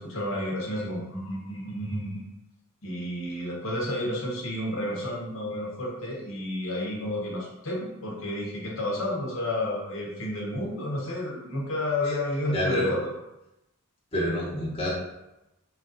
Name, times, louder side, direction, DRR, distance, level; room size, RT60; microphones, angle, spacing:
voice 1, 0.0-2.3 2.8-13.1, left 1 dB, 60° left, -3 dB, 1.0 m, -31 dB
voice 2, 12.5-12.9 14.1-14.9, left 1 dB, 25° left, -5 dB, 1.0 m, -27 dB
4.9 x 2.5 x 3.9 m, 0.93 s
head